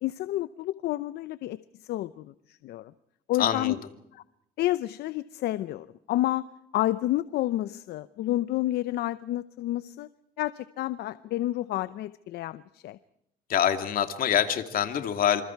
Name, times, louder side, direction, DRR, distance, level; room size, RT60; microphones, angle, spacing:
voice 1, 0.0-2.9 3.3-3.7 4.1-4.2 4.6-6.4 6.7-10.1 10.4-13.0, left 15 dB, 75° left, 15 dB, 0.8 m, -30 dB
voice 2, 3.4-3.8 13.5-15.4, left 9 dB, 55° left, 8 dB, 2.7 m, -25 dB
27.0 x 27.0 x 4.7 m, 0.77 s
cardioid pair, 110°, 17 cm